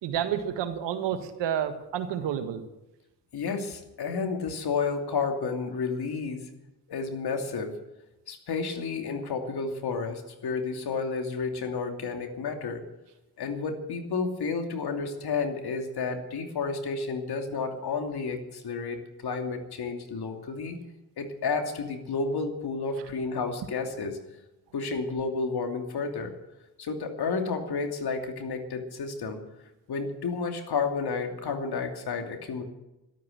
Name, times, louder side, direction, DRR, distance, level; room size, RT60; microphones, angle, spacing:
voice 1, 0.0-2.6, right 9 dB, 80° right, 9 dB, 1.7 m, -30 dB
voice 2, 3.3-6.5 6.9-7.7 8.3-12.8 13.4-20.8 21.2-24.2 24.7-26.3 26.8-29.4 29.9-32.6, left 4 dB, 60° left, 5 dB, 2.8 m, -31 dB
13.0 x 12.5 x 8.0 m, 0.96 s
supercardioid pair, 55°, 43 cm